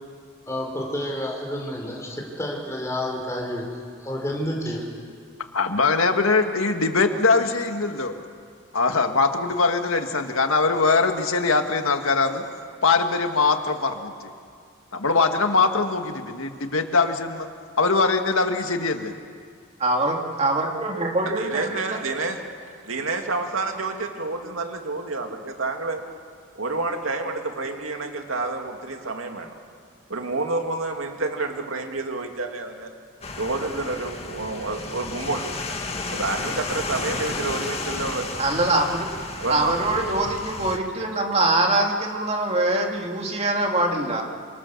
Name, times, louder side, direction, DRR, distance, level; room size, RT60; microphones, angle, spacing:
voice 1, 0.5-4.9, left 1 dB, 15° left, 0 dB, 4.7 m, -30 dB
voice 2, 5.5-8.1 8.7-12.4 12.8-14.3 14.9-17.5 17.8-19.1, left 4 dB, 90° left, 6 dB, 1.8 m, -22 dB
voice 3, 19.8-22.0 38.4-39.1 39.5-44.2, right 2 dB, 30° right, 1 dB, 2.7 m, -23 dB
voice 4, 21.4-22.4 22.8-26.0 26.6-29.5 30.1-32.9 33.4-35.6 36.1-38.4 39.4-39.7, right 3 dB, 85° right, 4 dB, 2.5 m, -29 dB
sound 1, 33.2-40.8, left 3 dB, 30° left, 2.0 m, -33 dB
27.5 x 26.0 x 7.2 m, 2.1 s
head